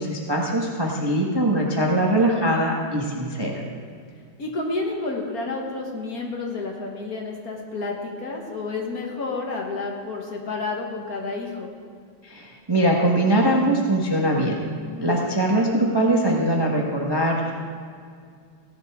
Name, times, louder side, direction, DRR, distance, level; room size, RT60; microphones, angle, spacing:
voice 1, 0.0-3.5 12.2-14.6 15.0-17.5, right 1 dB, 20° right, -1 dB, 0.7 m, -22 dB
voice 2, 4.4-11.7 14.8-15.1, left 3 dB, 45° left, 0 dB, 1.6 m, -30 dB
16.5 x 11.0 x 3.6 m, 2.2 s
omnidirectional pair, 2.4 m